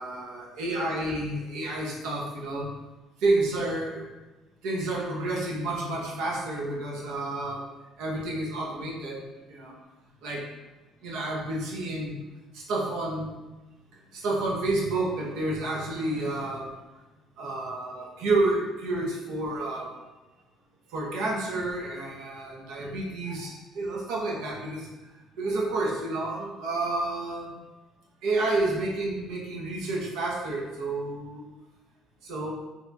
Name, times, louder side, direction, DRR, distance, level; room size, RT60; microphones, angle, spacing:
voice 1, 0.0-2.7 3.2-4.1 4.6-7.7 8.0-9.8 10.2-10.5 11.0-12.2 12.5-13.3 14.1-16.8 17.4-19.9 20.9-27.6 28.2-31.4 32.2-32.5, right 2 dB, 85° right, -2 dB, 0.7 m, -30 dB
3.9 x 2.8 x 2.2 m, 1.1 s
cardioid pair, 140°, 0 cm